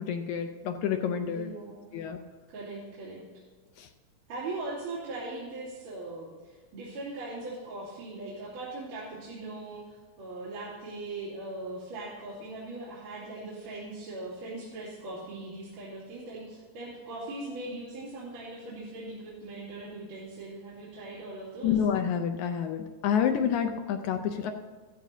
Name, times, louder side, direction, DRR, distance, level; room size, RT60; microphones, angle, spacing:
voice 1, 0.0-1.5 1.9-2.2 3.8-3.9 21.6-24.5, left 8 dB, 80° left, 5 dB, 1.8 m, -28 dB
voice 2, 1.3-2.0 2.5-3.2 4.3-21.8, right 2 dB, 65° right, -11 dB, 4.3 m, -40 dB
14.5 x 13.5 x 2.8 m, 1.4 s
omnidirectional pair, 3.9 m